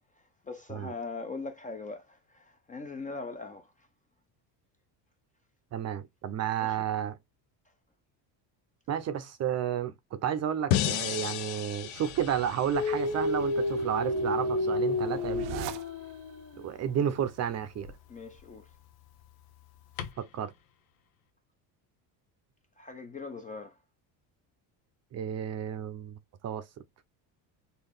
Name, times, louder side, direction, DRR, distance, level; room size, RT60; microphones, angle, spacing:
voice 1, 0.1-3.9 6.6-6.8 18.1-18.8 22.8-23.8, left 3 dB, 20° left, 0.4 m, -41 dB
voice 2, 5.7-7.2 8.9-15.8 16.6-17.9 20.2-20.5 25.1-26.2 26.4-26.7, right 9 dB, 35° right, 0.5 m, -32 dB
sound 1, 10.7-13.8, left 12 dB, 90° left, 0.7 m, -33 dB
sound 2, 11.8-16.3, right 13 dB, 85° right, 0.6 m, -41 dB
Dog, 12.7-16.7 17.7-17.9 20.0-20.1, left 2 dB, 50° left, 0.9 m, -31 dB
3.9 x 2.3 x 3.3 m
cardioid pair, 140°, 45 cm